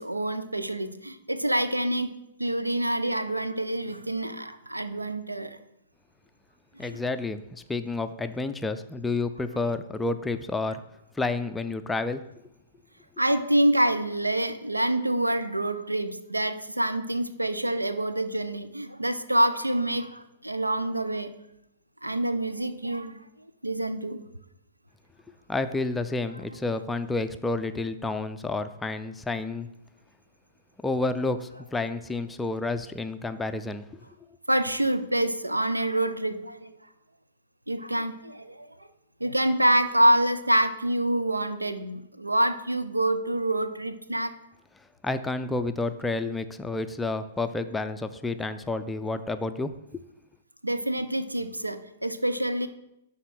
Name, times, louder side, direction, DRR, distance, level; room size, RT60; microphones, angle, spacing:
voice 1, 0.0-2.1 2.4-5.6 6.8-7.0 13.2-21.3 22.0-23.2 23.6-24.2 34.5-36.7 37.7-38.7 39.2-44.3 50.6-52.7, right 1 dB, 85° right, 10 dB, 0.6 m, -26 dB
voice 2, 6.8-10.8 11.1-12.2 25.5-29.7 30.8-34.0 45.0-50.0, left 3 dB, 10° left, 9 dB, 0.4 m, -30 dB
11.0 x 3.7 x 6.1 m, 0.85 s
figure-of-eight pair, 110°, 0 cm